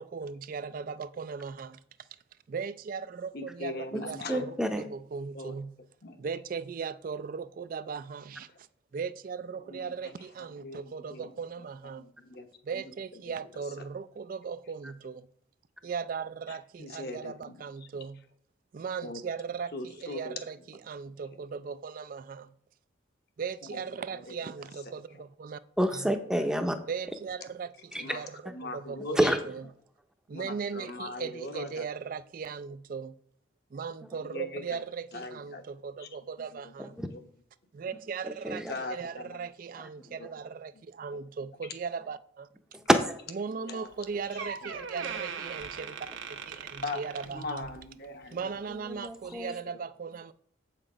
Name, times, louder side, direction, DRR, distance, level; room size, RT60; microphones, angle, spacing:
voice 1, 0.0-1.8 2.5-5.7 6.2-8.7 8.9-12.1 12.6-15.3 15.8-18.2 18.7-22.5 23.4-25.6 25.9-26.1 26.9-28.3 28.6-29.2 29.5-29.6 30.3-33.1 33.7-36.9 37.7-38.6 38.9-42.5 43.4-47.7 48.3-50.3, right 5 dB, 45° right, 0.3 m, -38 dB
voice 2, 3.3-4.4 5.1-5.6 6.0-6.2 8.5-8.6 9.6-10.1 10.4-11.7 12.0-12.5 12.7-13.3 16.5-17.9 19.0-19.2 19.7-20.3 23.6-24.7 25.1-25.2 28.0-29.4 30.3-31.9 34.2-34.8 35.1-35.6 36.0-36.1 36.5-36.7 37.0-37.3 38.7-39.5 40.0-40.3 40.7-40.8 41.1-41.2 43.5-44.8 46.8-48.5 48.9-49.0 49.4-49.5, left 2 dB, 55° left, 1.0 m, -41 dB
voice 3, 4.3-4.8 25.8-26.8 27.9-28.0 29.2-29.4 37.0-37.1 38.2-38.7 39.8-39.9 42.7-43.2 48.7-49.5, equal, 5° right, 0.6 m, -28 dB
Door, 43.9-44.0 44.4-47.9 48.2-48.5 49.2-49.3, right 6 dB, 80° right, 1.0 m, -40 dB
7.7 x 5.9 x 4.9 m
head